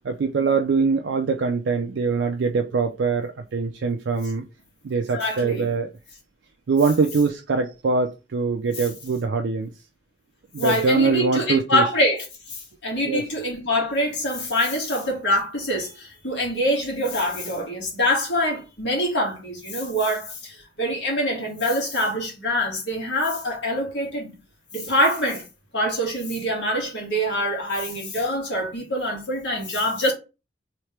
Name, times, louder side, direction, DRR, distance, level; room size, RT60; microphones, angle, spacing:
voice 1, 0.0-4.4 4.8-5.9 6.7-9.7 10.5-11.8 13.1-13.2, right 4 dB, 80° right, 0.4 m, -23 dB
voice 2, 5.1-5.7 10.6-24.3 24.7-25.5 25.7-30.1, equal, 70° left, 1.8 m, -25 dB
3.2 x 3.1 x 3.3 m
head